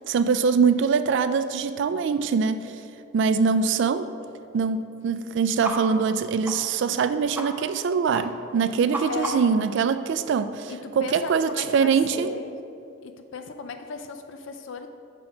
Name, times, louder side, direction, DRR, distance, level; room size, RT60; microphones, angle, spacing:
voice 1, 0.1-2.7 3.1-4.1 4.5-12.3, right 5 dB, 65° right, 12 dB, 0.3 m, -23 dB
sound 1, 5.6-5.8 6.0-6.1 6.4-6.6 6.9-7.0 7.3-7.5 7.7-7.9 8.1-8.2 8.5-9.6, right 1 dB, 10° right, 0.6 m, -33 dB
voice 2, 9.1-9.5 10.7-12.6 13.0-14.9, left 4 dB, 70° left, 7 dB, 0.5 m, -36 dB
5.7 x 3.8 x 6.0 m, 2.6 s
head